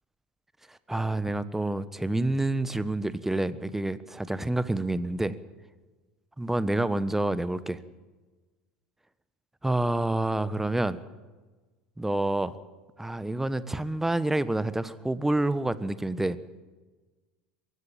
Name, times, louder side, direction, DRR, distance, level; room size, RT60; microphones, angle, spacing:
voice 1, 0.7-5.3 6.4-7.8 9.6-11.0 12.0-12.6 13.0-16.4, right 2 dB, 5° right, 14 dB, 1.3 m, -28 dB
22.5 x 16.0 x 7.3 m, 1.3 s
hypercardioid pair, 75°, 5 cm